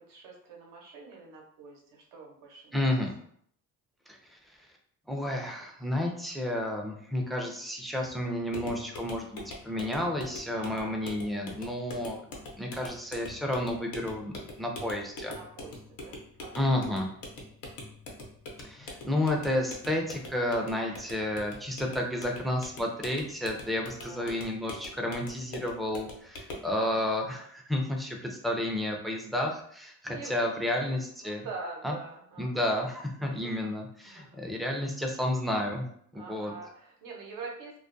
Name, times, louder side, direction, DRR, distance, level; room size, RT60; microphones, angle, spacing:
voice 1, 0.0-3.0 7.2-7.5 10.6-11.1 15.3-16.9 20.8-21.3 24.0-24.3 26.7-27.0 30.1-30.5 31.2-32.7 33.2-33.7 34.0-34.3 36.1-37.7, right 4 dB, 75° right, -1 dB, 0.8 m, -45 dB
voice 2, 2.7-3.1 4.1-4.2 5.1-12.2 12.6-15.4 16.6-17.1 18.6-31.5 31.8-32.0 32.4-35.9 36.1-36.5, left 1 dB, ahead, 1 dB, 0.4 m, -31 dB
sound 1, 8.5-26.7, left 2 dB, 85° left, 0.7 m, -44 dB
2.3 x 2.1 x 2.5 m, 0.64 s
cardioid pair, 95°, 34 cm